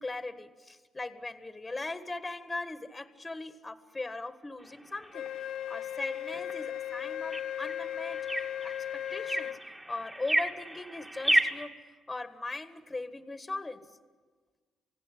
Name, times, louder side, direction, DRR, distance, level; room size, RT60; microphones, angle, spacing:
voice 1, 0.0-5.3 5.7-8.3 8.6-9.6 9.9-11.8 12.1-13.9, left 2 dB, 20° left, 9 dB, 1.7 m, -39 dB
sound 1, 4.6-11.7, right 1 dB, 15° right, 2.4 m, -34 dB
Wind instrument woodwind instrument, 5.1-9.6, left 11 dB, 80° left, 0.7 m, -36 dB
27.5 x 17.5 x 9.9 m, 1.4 s
cardioid pair, 90°, 0 cm